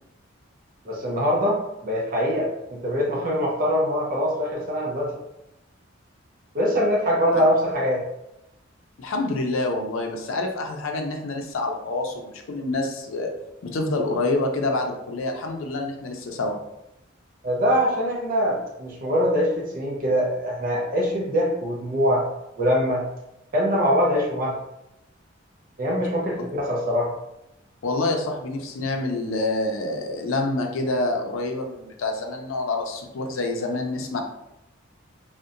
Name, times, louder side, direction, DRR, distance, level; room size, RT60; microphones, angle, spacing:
voice 1, 0.8-5.1 6.5-8.0 17.4-22.2 22.6-23.0 23.5-24.5 25.8-27.1, equal, 45° right, -2 dB, 0.5 m, -23 dB
voice 2, 9.0-13.3 13.6-16.6 27.8-34.2, left 2 dB, 80° left, 3 dB, 0.4 m, -27 dB
2.7 x 2.1 x 2.4 m, 0.85 s
head